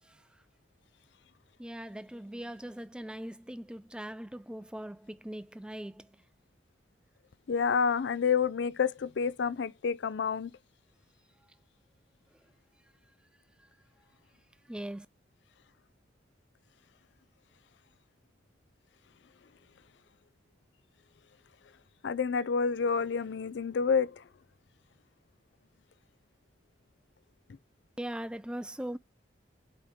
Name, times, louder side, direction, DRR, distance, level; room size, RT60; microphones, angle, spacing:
voice 1, 1.6-6.2 13.6-13.7 14.7-15.1 28.0-29.0, right 1 dB, 5° right, 0.3 m, -40 dB
voice 2, 7.5-10.5 22.0-24.1, left 6 dB, 70° left, 0.4 m, -28 dB
5.2 x 4.9 x 4.2 m
head